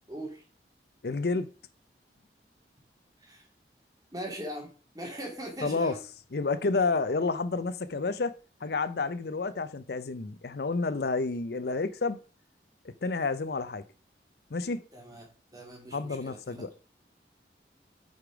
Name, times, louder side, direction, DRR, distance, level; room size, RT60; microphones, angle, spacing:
voice 1, 0.1-0.4 3.2-3.5 4.1-4.7 4.9-6.0 14.9-16.7, equal, 20° right, 2.4 m, -40 dB
voice 2, 1.0-1.5 5.6-5.9 6.3-8.3 8.6-12.2 13.0-13.8 14.5-14.8 15.9-16.7, left 3 dB, 65° left, 0.6 m, -30 dB
8.1 x 5.0 x 5.0 m
head